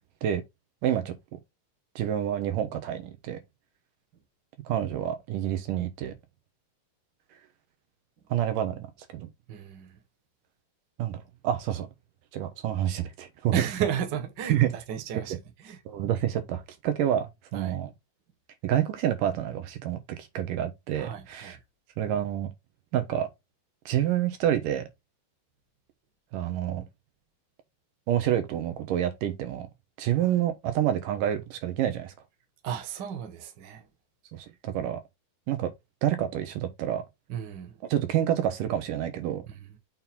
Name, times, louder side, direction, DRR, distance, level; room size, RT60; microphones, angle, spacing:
voice 1, 0.8-1.1 2.0-3.4 4.7-6.1 8.3-8.9 9.1-9.3 11.0-11.9 12.3-13.5 14.5-14.7 15.9-17.9 18.6-21.6 22.0-22.5 22.9-23.3 23.9-24.9 26.3-26.8 28.1-29.7 30.0-32.1 34.3-35.0 35.5-35.7 36.0-37.0 37.9-39.4, right 11 dB, 80° right, 2.7 m, -28 dB
voice 2, 9.5-10.0 13.5-15.8 17.5-17.8 21.0-21.6 30.2-30.3 32.6-33.9 34.4-34.5 37.3-37.8 39.5-39.6, right 8 dB, 55° right, 1.3 m, -34 dB
6.5 x 4.0 x 4.3 m
omnidirectional pair, 3.8 m